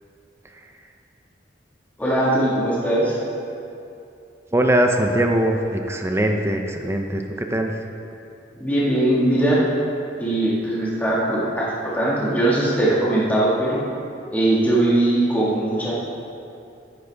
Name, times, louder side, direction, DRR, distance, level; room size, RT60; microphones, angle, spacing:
voice 1, 2.0-3.2 8.5-9.6 10.2-13.8 14.3-15.9, right 1 dB, 10° left, -8 dB, 1.7 m, -20 dB
voice 2, 4.5-7.7, right 1 dB, 15° right, 3 dB, 0.6 m, -21 dB
12.0 x 10.5 x 3.5 m, 2.7 s
head